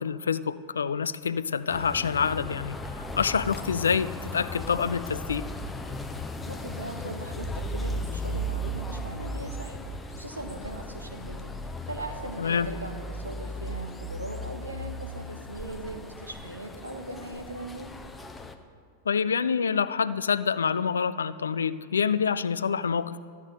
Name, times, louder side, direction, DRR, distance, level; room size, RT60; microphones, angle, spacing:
voice 1, 0.0-5.5 12.4-12.7 19.1-23.2, left 6 dB, 70° left, 16 dB, 0.3 m, -27 dB
sound 1, 1.7-18.5, equal, 10° left, 0.7 m, -36 dB
voice 2, 6.5-9.8 10.1-11.5 11.9-17.9, right 1 dB, 85° right, 4 dB, 1.1 m, -39 dB
12.5 x 8.3 x 4.9 m, 2.2 s
figure-of-eight pair, 90°, 0 cm